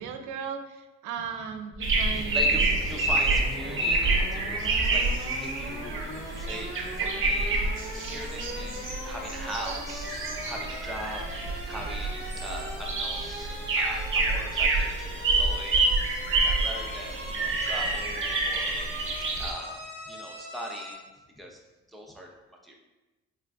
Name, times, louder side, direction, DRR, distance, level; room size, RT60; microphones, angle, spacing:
voice 1, 0.0-2.7, right 6 dB, 85° right, 6 dB, 0.5 m, -37 dB
sound 1, 1.7-20.9, left 1 dB, 70° left, 1.3 m, -41 dB
sound 2, 1.8-19.5, right 3 dB, 45° right, 0.7 m, -28 dB
voice 2, 2.1-21.1 21.4-21.6 21.9-22.3 22.6-22.7, right 1 dB, ahead, -2 dB, 0.5 m, -41 dB
3.7 x 3.4 x 2.2 m, 1.1 s
cardioid pair, 90°, 30 cm